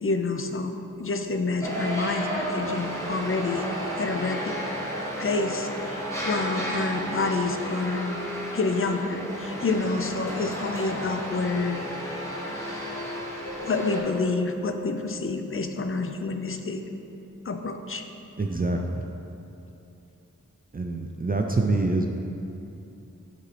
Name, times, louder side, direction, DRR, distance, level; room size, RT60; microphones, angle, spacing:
voice 1, 0.0-3.7 4.0-4.6 5.2-8.2 8.5-12.1 13.6-16.8 17.4-18.0, left 3 dB, 40° left, 6 dB, 0.5 m, -28 dB
sound 1, 1.6-14.0, equal, 10° left, 1.3 m, -32 dB
Keyboard (musical), 13.4-16.2, left 2 dB, 80° left, 0.9 m, -40 dB
voice 2, 18.4-19.0 20.7-22.1, right 2 dB, 30° right, 2 dB, 0.4 m, -25 dB
9.4 x 3.7 x 3.3 m, 2.9 s
wide cardioid pair, 50°, 32 cm